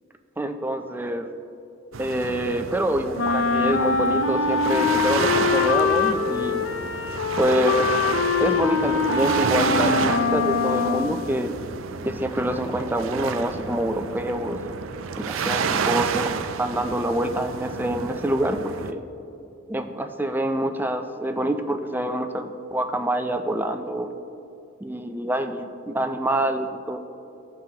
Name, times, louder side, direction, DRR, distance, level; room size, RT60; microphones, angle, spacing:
voice 1, 0.4-1.3 2.0-6.7 7.4-7.9 8.4-11.5 12.0-14.6 15.2-16.3 16.6-19.0 19.7-24.1 24.8-27.0, right 1 dB, 10° right, 6 dB, 0.4 m, -26 dB
Rockaway Beach Gentle Waves, 1.9-18.9, right 5 dB, 90° right, 0.4 m, -30 dB
Wind instrument woodwind instrument, 3.2-11.3, left 4 dB, 75° left, 0.5 m, -23 dB
15.5 x 5.7 x 2.9 m, 2.7 s
head